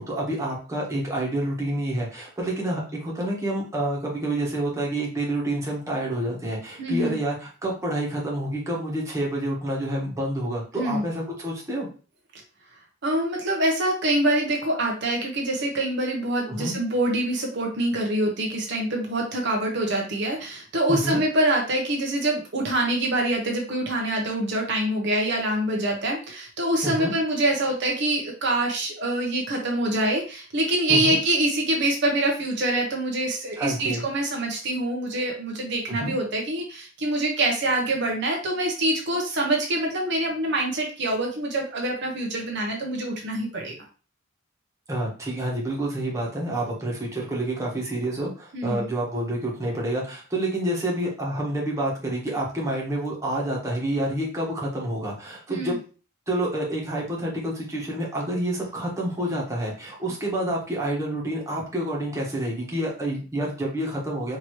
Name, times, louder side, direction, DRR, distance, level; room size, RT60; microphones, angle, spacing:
voice 1, 0.0-11.9 16.5-16.8 20.9-21.2 26.8-27.1 30.9-31.2 33.6-34.0 35.9-36.1 44.9-55.8 56.3-64.4, right 1 dB, 15° right, -3 dB, 1.3 m, -28 dB
voice 2, 6.8-7.2 10.7-11.0 13.0-43.7 48.5-48.9 55.5-55.8, right 1 dB, 60° right, 0 dB, 0.9 m, -25 dB
4.6 x 2.9 x 3.0 m, 0.36 s
head